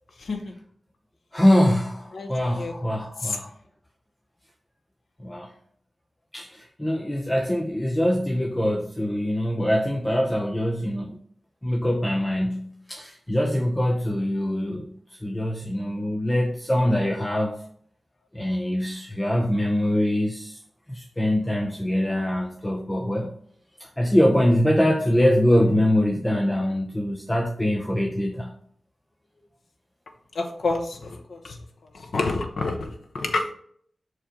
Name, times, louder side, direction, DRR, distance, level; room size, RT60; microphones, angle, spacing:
voice 1, 0.2-0.5 2.1-2.7 3.2-3.4 30.3-31.6 31.9-32.9 33.1-33.5, left 3 dB, 75° left, 3 dB, 0.9 m, -28 dB
voice 2, 1.3-3.5 5.2-5.5 6.3-11.2 11.6-17.6 18.3-20.6 20.9-23.4 23.8-28.5, equal, 15° left, 1 dB, 0.6 m, -23 dB
6.4 x 4.5 x 3.7 m, 0.62 s
wide cardioid pair, 110°, 0 cm